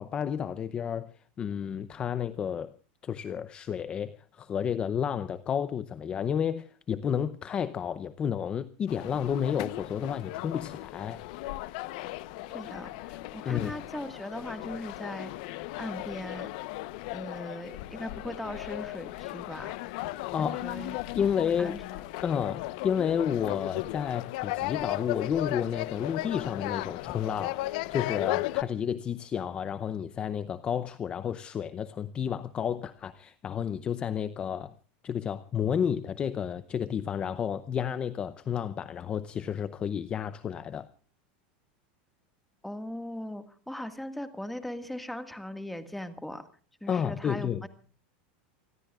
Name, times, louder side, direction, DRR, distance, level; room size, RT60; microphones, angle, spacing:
voice 1, 0.0-2.8 3.0-11.2 13.4-13.7 20.3-20.6 21.1-21.8 22.2-34.7 35.0-40.9 46.9-47.7, left 8 dB, 20° left, 0.7 m, -31 dB
sound 1, 8.9-28.6, left 18 dB, 55° left, 0.9 m, -36 dB
voice 2, 12.5-15.3 15.8-16.5 17.1-19.9 20.4-21.0 21.6-21.8 42.6-46.5 46.8-47.7, left 1 dB, ahead, 1.8 m, -39 dB
28.5 x 20.5 x 2.4 m
supercardioid pair, 165°, 5 cm